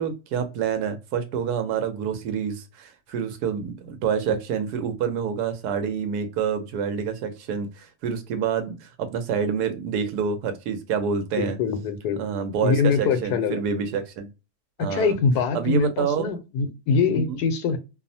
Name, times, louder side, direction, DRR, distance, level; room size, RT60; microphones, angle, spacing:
voice 1, 0.0-11.6 12.2-14.3 14.8-15.2 15.5-16.4 17.1-17.4, right 7 dB, 80° right, 1.1 m, -27 dB
voice 2, 11.4-12.2 12.6-13.6 14.8-17.8, left 5 dB, 80° left, 1.2 m, -24 dB
2.9 x 2.0 x 2.6 m
omnidirectional pair, 1.7 m